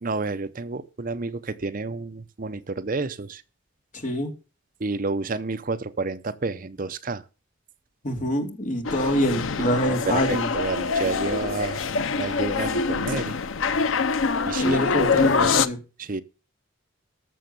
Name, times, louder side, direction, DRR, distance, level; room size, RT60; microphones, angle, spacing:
voice 1, 0.0-3.4 4.8-7.2 9.9-11.9 12.1-13.4 14.4-15.5 16.0-16.2, right 3 dB, 45° right, 0.7 m, -30 dB
voice 2, 3.9-4.3 8.0-10.5 14.6-15.8, equal, 40° left, 2.6 m, -25 dB
sound 1, 8.8-15.7, left 5 dB, 85° left, 0.7 m, -25 dB
14.0 x 6.7 x 6.8 m
head